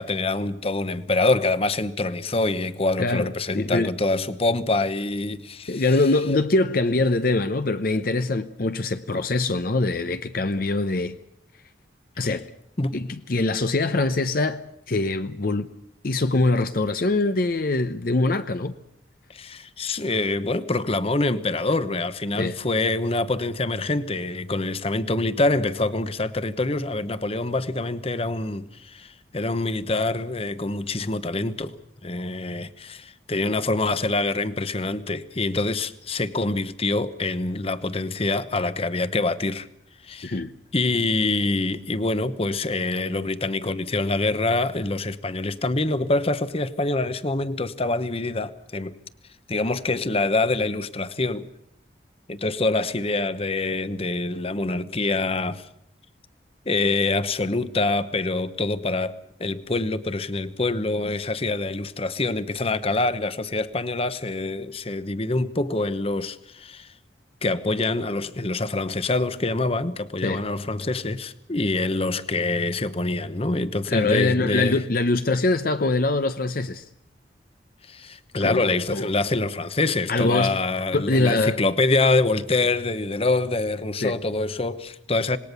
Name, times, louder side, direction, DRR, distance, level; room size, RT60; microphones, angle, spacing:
voice 1, 0.0-6.0 12.8-13.0 19.3-31.7 32.0-39.7 40.0-40.4 40.7-49.0 49.5-51.5 52.3-55.7 56.7-66.9 67.4-74.8 77.9-85.4, left 2 dB, 35° left, 1.0 m, -25 dB
voice 2, 3.5-3.9 5.7-11.2 12.2-12.4 12.9-14.6 14.9-15.7 16.0-18.7 22.4-22.5 40.2-40.5 70.2-70.4 73.9-76.8 78.4-78.6 78.9-79.1 80.1-80.6 80.9-81.6 84.0-84.1, left 2 dB, 55° left, 0.8 m, -23 dB
27.0 x 20.0 x 6.8 m
head